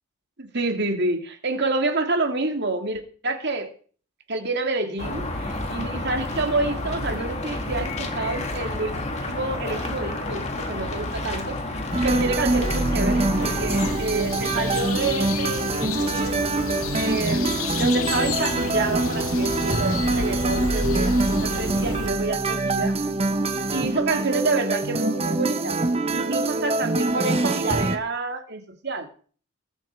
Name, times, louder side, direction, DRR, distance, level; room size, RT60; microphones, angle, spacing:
voice 1, 0.4-3.7 4.3-9.0 9.2-16.4 16.9-23.0 23.7-25.8 26.1-29.1, right 2 dB, 50° right, 5 dB, 2.6 m, -28 dB
sound 1, 5.0-13.9, left 2 dB, 30° left, 2.4 m, -30 dB
sound 2, 11.9-28.0, right 2 dB, 30° right, 1.2 m, -24 dB
sound 3, 13.7-22.1, left 4 dB, 80° left, 1.9 m, -31 dB
22.0 x 8.1 x 4.7 m, 0.43 s
head